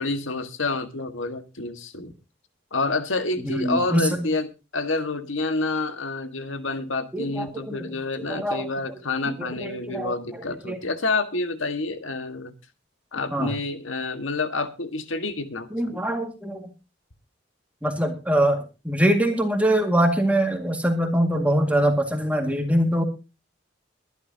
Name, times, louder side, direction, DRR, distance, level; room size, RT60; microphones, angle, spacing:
voice 1, 0.0-2.1 2.7-12.5 13.1-16.0, left 3 dB, 80° left, 8 dB, 1.7 m, -28 dB
voice 2, 3.4-4.1 7.1-7.9 8.2-9.0 9.3-10.8 13.3-13.5 15.7-16.7 17.8-23.0, right 1 dB, 5° right, 4 dB, 2.0 m, -24 dB
22.5 x 11.0 x 2.8 m, 0.30 s
head